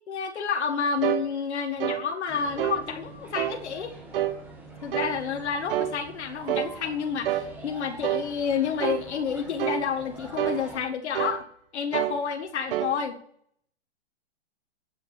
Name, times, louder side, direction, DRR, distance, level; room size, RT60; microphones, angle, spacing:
voice 1, 0.1-3.9 4.8-11.5 11.7-13.2, left 6 dB, 75° left, 6 dB, 1.7 m, -29 dB
sound 1, 1.0-1.3 1.8-2.0 2.6-2.8 3.3-3.6 4.1-4.4 4.9-5.2 5.7-6.0 6.5-6.7 7.2-7.5 8.0-8.3 8.8-9.0 9.6-9.9 10.4-10.6 11.1-11.4 11.9-12.2 12.7-12.9, right 12 dB, 50° right, 1.1 m, -27 dB
sound 2, 2.3-10.8, right 2 dB, 5° right, 2.2 m, -45 dB
8.9 x 8.1 x 9.1 m, 0.65 s
hypercardioid pair, 145°, 34 cm